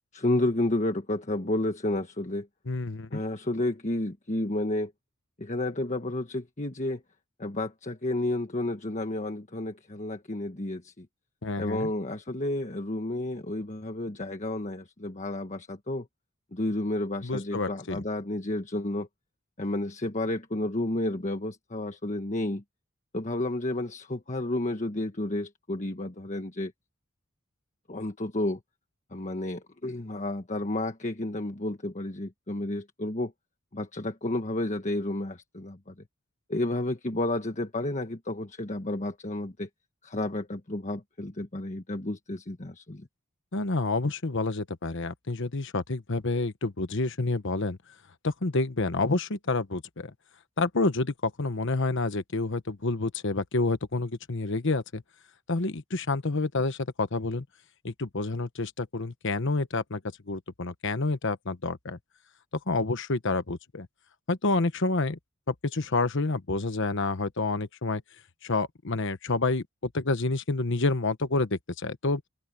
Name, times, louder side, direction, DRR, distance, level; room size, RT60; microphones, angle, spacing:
voice 1, 0.1-2.5 3.1-4.9 5.4-7.0 7.4-11.1 11.6-16.1 16.5-19.1 19.6-22.6 23.1-26.7 27.9-28.6 29.1-33.3 33.7-35.9 36.5-39.7 40.0-43.1, left 1 dB, 35° left, 1.4 m, -31 dB
voice 2, 2.7-3.2 11.4-11.9 17.2-18.0 43.5-47.8 48.2-50.1 50.6-55.0 55.5-57.4 57.8-60.0 60.3-62.0 62.7-63.9 64.3-65.2 65.5-68.0 68.4-69.6 69.9-72.2, left 3 dB, 60° left, 1.2 m, -28 dB
open air
head